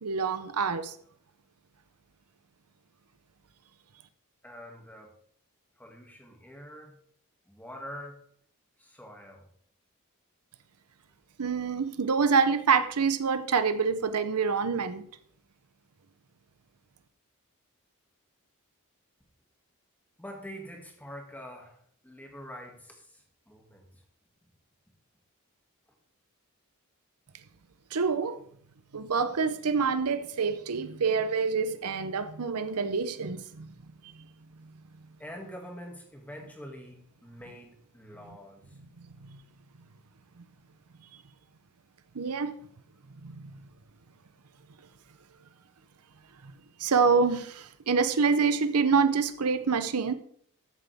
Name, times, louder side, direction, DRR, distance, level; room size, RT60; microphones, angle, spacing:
voice 1, 0.0-0.9 11.4-15.0 27.9-28.4 28.9-33.7 39.0-39.4 42.1-42.6 43.2-43.5 46.8-50.1, right 5 dB, 85° right, 0.8 m, -26 dB
voice 2, 4.4-5.1 5.8-7.0 7.5-8.2 8.8-9.5 20.2-24.0 35.2-38.8, equal, 5° left, 2.2 m, -45 dB
14.0 x 7.8 x 3.5 m
head